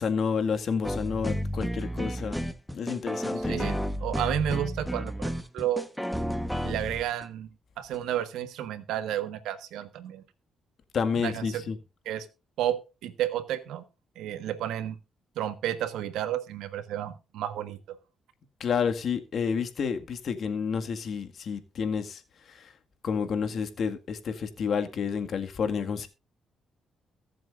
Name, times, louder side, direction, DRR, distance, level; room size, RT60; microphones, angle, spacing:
voice 1, 0.0-2.4 2.7-3.6 10.9-11.8 18.6-22.2 22.5-22.7 23.0-26.1, left 6 dB, 55° left, 1.9 m, -30 dB
sound 1, 0.8-7.2 7.9-8.0, equal, ahead, 1.2 m, -31 dB
voice 2, 3.4-5.9 6.6-7.5 7.8-10.2 11.2-11.6 12.0-12.3 12.6-13.8 14.1-15.0 15.3-17.8, right 11 dB, 85° right, 1.4 m, -31 dB
22.5 x 7.6 x 2.5 m
cardioid pair, 90°, 0 cm